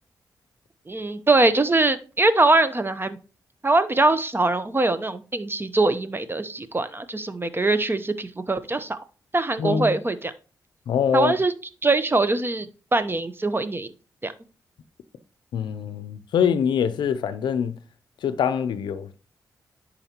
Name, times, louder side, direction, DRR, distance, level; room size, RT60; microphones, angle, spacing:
voice 1, 0.9-3.2 3.6-9.0 9.3-10.3 11.1-11.5 11.8-13.9 14.2-14.3, right 2 dB, 30° right, 0.8 m, -22 dB
voice 2, 9.6-9.9 10.9-11.3 15.5-17.8 18.2-19.1, left 7 dB, 80° left, 0.5 m, -24 dB
10.5 x 4.1 x 2.9 m
supercardioid pair, 40°, 8 cm